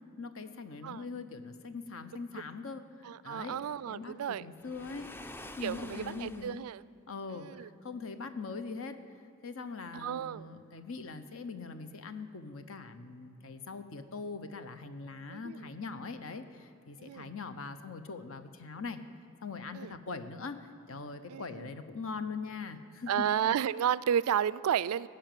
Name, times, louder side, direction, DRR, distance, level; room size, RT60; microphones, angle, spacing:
voice 1, 0.2-5.1 5.6-6.6 7.1-9.0 9.4-19.0 19.4-23.2, left 4 dB, 70° left, 10 dB, 0.8 m, -42 dB
voice 2, 3.0-4.5 5.6-6.8 7.3-7.7 9.9-10.5 15.3-15.6 17.0-17.3 19.7-20.0 21.3-21.7 23.1-25.1, right 9 dB, 80° right, 20 dB, 0.3 m, -32 dB
Waves surf, 4.6-6.7, left 1 dB, 10° left, 0.4 m, -48 dB
15.5 x 5.8 x 9.1 m, 2.6 s
head